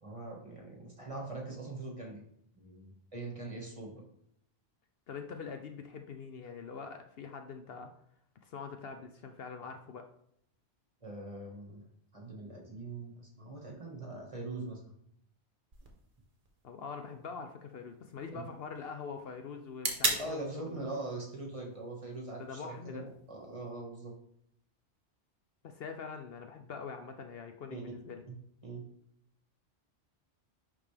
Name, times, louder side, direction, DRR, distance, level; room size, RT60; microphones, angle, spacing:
voice 1, 0.0-2.2 2.6-4.0 11.0-11.8 12.1-14.9 18.3-18.4 20.2-24.1 27.7-27.8 28.3-28.4 28.6-28.8, right 2 dB, 30° right, -1 dB, 1.7 m, -42 dB
voice 2, 5.1-7.9 8.4-10.1 16.6-20.4 20.7-20.8 22.4-23.0 25.6-28.2, left 5 dB, 65° left, 5 dB, 0.8 m, -44 dB
sound 1, 15.7-23.7, right 3 dB, 50° right, 1.3 m, -41 dB
10.5 x 3.6 x 3.4 m, 0.72 s
omnidirectional pair, 1.2 m